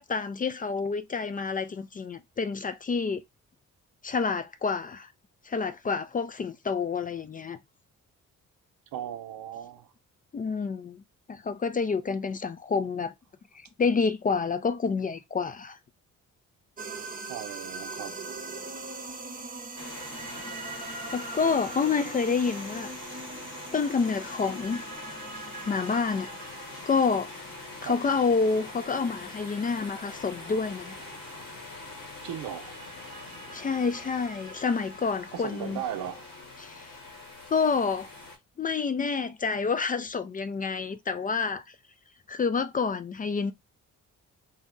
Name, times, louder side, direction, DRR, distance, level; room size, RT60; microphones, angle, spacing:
voice 1, 0.0-3.2 4.0-5.1 5.4-7.6 10.3-11.0 11.3-13.1 13.5-15.8 21.1-22.9 23.7-24.8 25.7-26.3 26.9-27.3 27.8-31.0 33.5-35.8 36.6-37.0 37.5-38.1 38.6-41.8 42.3-43.5, left 5 dB, 25° left, 0.3 m, -28 dB
voice 2, 8.9-9.9 17.3-18.4 27.8-28.0 32.2-32.8 35.3-36.3, right 10 dB, 85° right, 0.6 m, -37 dB
sound 1, 16.8-35.4, right 3 dB, 25° right, 0.6 m, -43 dB
sound 2, 19.8-38.4, left 3 dB, 80° left, 1.5 m, -43 dB
2.7 x 2.1 x 3.7 m
cardioid pair, 75°, 33 cm